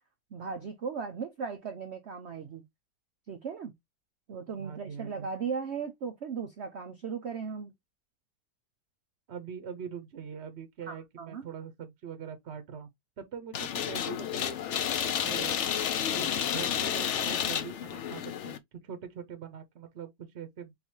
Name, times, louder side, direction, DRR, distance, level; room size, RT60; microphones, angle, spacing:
voice 1, 0.3-2.6 3.3-3.7 4.3-7.7 10.9-11.4, right 6 dB, 85° right, 0.6 m, -37 dB
voice 2, 4.5-5.3 9.3-12.9 13.2-15.6 16.1-20.7, right 7 dB, 50° right, 0.8 m, -43 dB
sound 1, 13.5-18.6, left 9 dB, 80° left, 0.6 m, -31 dB
4.0 x 3.9 x 3.0 m
omnidirectional pair, 2.0 m